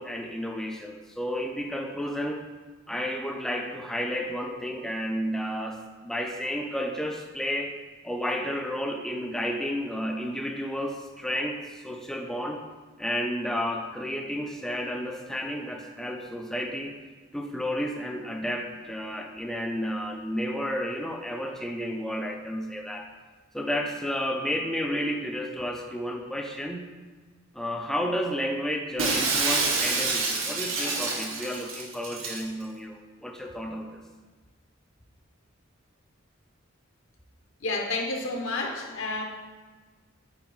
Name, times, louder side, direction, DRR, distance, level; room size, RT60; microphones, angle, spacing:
voice 1, 0.0-2.4 2.9-7.8 8.0-12.6 13.0-16.9 17.3-23.1 23.5-26.9 27.5-34.0, equal, ahead, 2 dB, 0.4 m, -31 dB
Shatter, 29.0-32.4, right 3 dB, 75° right, 1.1 m, -27 dB
voice 2, 37.6-39.2, left 2 dB, 70° left, 2 dB, 1.0 m, -30 dB
8.7 x 4.3 x 3.1 m, 1.4 s
head